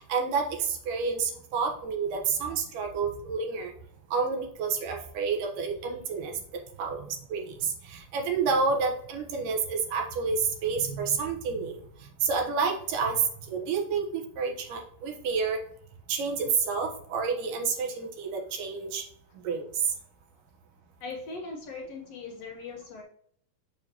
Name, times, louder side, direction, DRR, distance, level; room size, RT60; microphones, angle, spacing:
voice 1, 0.0-3.7 4.1-6.3 6.8-11.8 12.2-15.6 16.1-19.0 19.4-19.7, right 5 dB, 70° right, 2 dB, 2.5 m, -29 dB
voice 2, 21.0-23.0, left 3 dB, 80° left, 1 dB, 1.4 m, -39 dB
7.1 x 6.6 x 2.9 m, 0.65 s
omnidirectional pair, 4.3 m